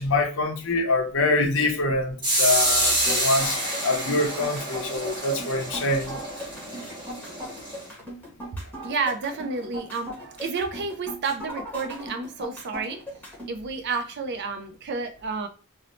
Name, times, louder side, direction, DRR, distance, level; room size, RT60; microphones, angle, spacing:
voice 1, 0.0-6.2, left 2 dB, 60° left, 0.6 m, -25 dB
sound 1, 2.2-7.9, right 1 dB, 20° right, 1.2 m, -27 dB
sound 2, 2.9-13.5, equal, 5° left, 0.9 m, -38 dB
voice 2, 8.7-13.0 13.5-15.5, right 4 dB, 50° right, 0.4 m, -30 dB
2.6 x 2.0 x 2.9 m
head